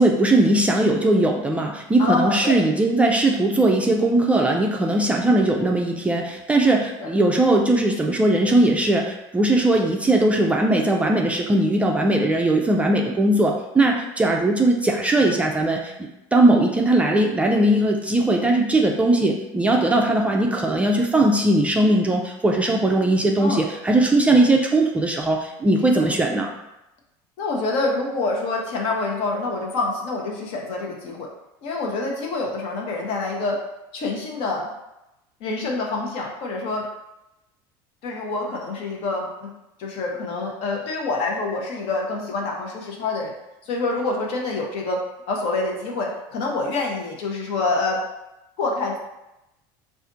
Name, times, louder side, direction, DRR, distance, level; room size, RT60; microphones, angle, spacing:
voice 1, 0.0-26.5, right 2 dB, 10° right, 0 dB, 0.3 m, -19 dB
voice 2, 2.0-2.6 7.0-7.1 18.3-18.5 23.4-23.6 26.0-26.1 27.4-31.3 31.6-33.6 33.9-34.7 35.4-36.8 38.0-39.5 39.8-43.3 43.6-45.0 45.3-48.0 48.6-49.0, left 3 dB, 60° left, -1 dB, 0.9 m, -26 dB
4.1 x 2.5 x 2.5 m, 0.91 s
supercardioid pair, 120°, 11 cm